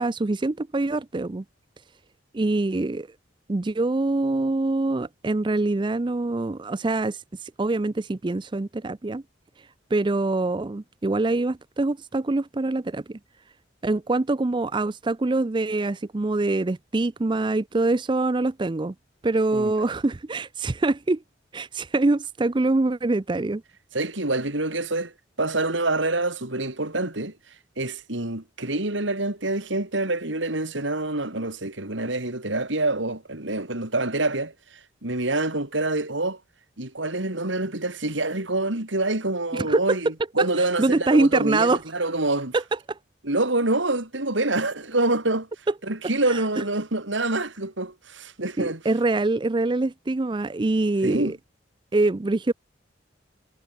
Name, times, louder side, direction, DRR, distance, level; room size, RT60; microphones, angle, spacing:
voice 1, 0.0-1.4 2.3-3.1 3.5-9.2 9.6-13.2 13.8-18.9 19.2-21.2 21.5-23.6 39.5-40.0 40.6-41.8 42.5-43.0 46.3-46.4 48.6-51.4 51.9-52.5, right 2 dB, 25° right, 0.4 m, -24 dB
voice 2, 23.9-25.1 25.4-27.3 27.8-36.4 36.8-42.6 43.2-45.5 45.9-48.8 51.0-51.3, right 2 dB, 75° right, 3.8 m, -26 dB
head